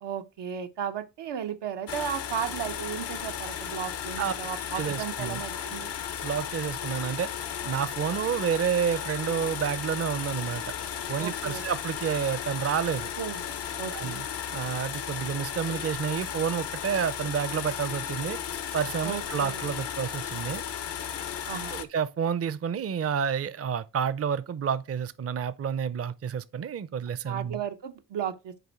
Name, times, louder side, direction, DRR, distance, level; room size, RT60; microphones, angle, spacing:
voice 1, 0.0-5.9 11.2-11.6 13.2-14.2 19.0-19.6 21.5-21.8 27.3-28.5, right 8 dB, 80° right, 0.7 m, -35 dB
sound 1, 1.9-21.8, left 9 dB, 75° left, 0.8 m, -35 dB
voice 2, 4.7-5.4 6.2-7.3 7.6-10.7 11.1-13.1 13.9-14.2 14.5-18.4 18.7-20.6 21.7-27.6, right 7 dB, 35° right, 0.5 m, -29 dB
6.8 x 4.4 x 4.3 m
supercardioid pair, 45°, 42 cm